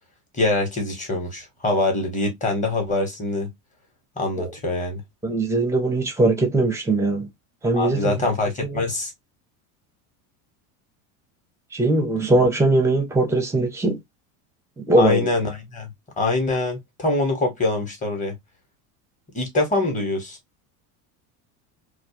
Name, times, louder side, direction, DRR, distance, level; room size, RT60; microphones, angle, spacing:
voice 1, 0.3-3.5 4.2-5.0 7.7-9.1 15.0-18.4 19.3-20.4, left 2 dB, 15° left, 1.0 m, -24 dB
voice 2, 5.2-7.3 7.6-8.2 8.6-8.8 11.7-14.0 14.9-15.3, right 2 dB, 5° right, 0.5 m, -20 dB
2.3 x 2.0 x 2.8 m
supercardioid pair, 130°, 43 cm